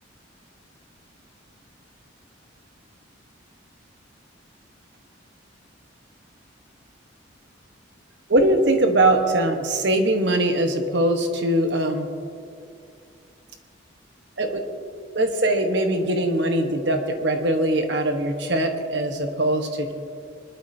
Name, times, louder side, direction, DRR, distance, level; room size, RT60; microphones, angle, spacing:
voice 1, 8.3-12.1 14.4-14.6 15.1-19.9, right 1 dB, 60° right, 5 dB, 1.2 m, -21 dB
21.0 x 12.0 x 2.8 m, 2.4 s
head